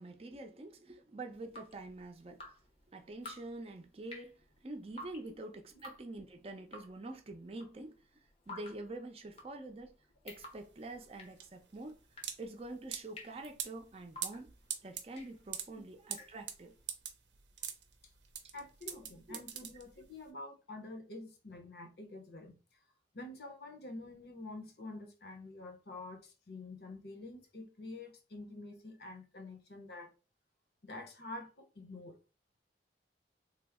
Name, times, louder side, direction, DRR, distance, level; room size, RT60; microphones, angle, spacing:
voice 1, 0.0-2.4 2.9-4.4 4.6-8.0 8.5-9.9 10.2-12.0 12.4-14.5 14.8-16.7 19.3-19.4, right 2 dB, 35° right, 0.5 m, -46 dB
Drip, 1.3-16.8, left 2 dB, 35° left, 0.6 m, -54 dB
sound 1, 10.3-20.2, right 9 dB, 85° right, 0.6 m, -44 dB
voice 2, 18.5-22.8 23.1-30.1 30.8-32.2, left 2 dB, 65° left, 0.7 m, -48 dB
3.4 x 2.0 x 3.5 m
head